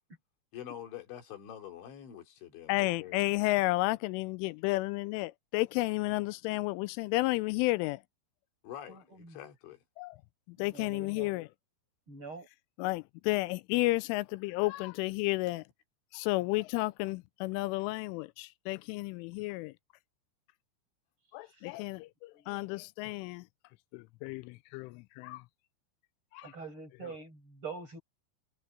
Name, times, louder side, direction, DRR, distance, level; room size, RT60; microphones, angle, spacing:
voice 1, 0.5-3.2 8.6-9.8, left 10 dB, 65° left, 5.4 m, -46 dB
voice 2, 2.7-8.0 10.0-10.2 10.5-11.5 12.8-15.6 16.1-19.7 21.3-23.5 23.9-25.4 26.3-26.5 27.0-27.1, left 21 dB, 85° left, 2.9 m, -32 dB
voice 3, 8.9-9.4 10.6-11.3 12.1-12.5 22.3-22.5 26.4-28.0, right 5 dB, 25° right, 8.6 m, -45 dB
omnidirectional pair, 5.8 m